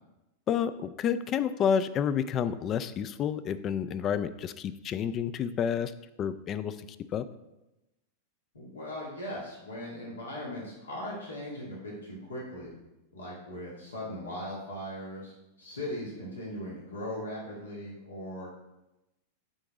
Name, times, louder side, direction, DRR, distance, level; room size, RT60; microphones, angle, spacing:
voice 1, 0.5-5.9 6.2-6.8 7.1-7.3, left 8 dB, 35° left, 14 dB, 0.4 m, -29 dB
voice 2, 8.5-12.8 13.1-15.3 15.6-18.6, left 1 dB, 85° left, -4 dB, 1.8 m, -39 dB
8.9 x 3.8 x 3.7 m, 0.95 s
hypercardioid pair, 95°, 0 cm